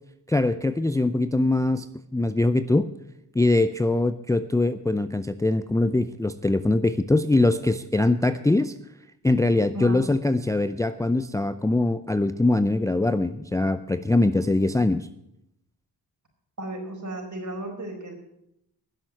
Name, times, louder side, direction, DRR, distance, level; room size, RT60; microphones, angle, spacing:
voice 1, 0.3-1.9 2.1-2.9 3.3-8.7 9.2-15.1, left 2 dB, 10° left, 12 dB, 0.5 m, -22 dB
voice 2, 16.6-18.1, right 1 dB, 45° right, 1 dB, 4.7 m, -34 dB
11.0 x 7.5 x 9.3 m, 0.79 s
cardioid pair, 60°, 40 cm